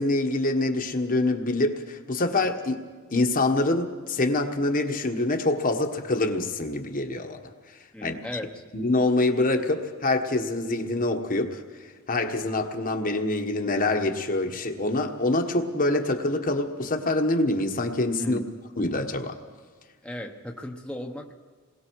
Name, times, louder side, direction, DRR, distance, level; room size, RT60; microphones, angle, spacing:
voice 1, 0.0-2.8 3.1-7.4 8.0-8.1 8.7-11.6 12.1-18.4 18.8-19.3, left 2 dB, 40° left, 5 dB, 1.4 m, -25 dB
voice 2, 7.9-8.6 18.2-18.6 20.0-21.3, left 1 dB, 5° left, 1 dB, 1.1 m, -36 dB
27.5 x 21.0 x 4.8 m, 1.5 s
head